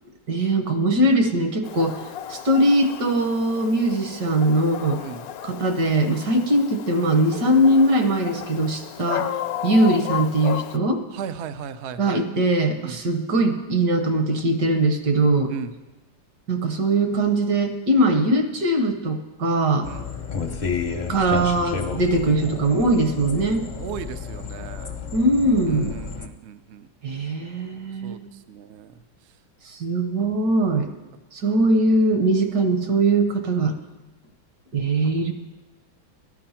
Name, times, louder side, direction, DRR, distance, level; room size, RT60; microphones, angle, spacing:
voice 1, 0.3-2.0 2.3-5.0 5.4-9.3 9.6-11.0 12.0-15.5 16.5-19.9 21.1-23.6 25.1-26.0 27.0-28.2 29.7-30.9 31.3-33.8 34.7-35.3, right 1 dB, 60° right, 6 dB, 1.7 m, -21 dB
Dog, 1.6-10.8, left 11 dB, 75° left, 0.8 m, -34 dB
voice 2, 11.1-12.2 12.8-13.0 15.5-15.7 19.8-20.1 23.8-25.0 25.7-26.9 28.0-29.0, right 7 dB, 85° right, 11 dB, 0.6 m, -36 dB
sound 1, 19.8-26.3, left 5 dB, 50° left, 0.5 m, -31 dB
14.0 x 11.0 x 5.7 m, 1.1 s
omnidirectional pair, 2.1 m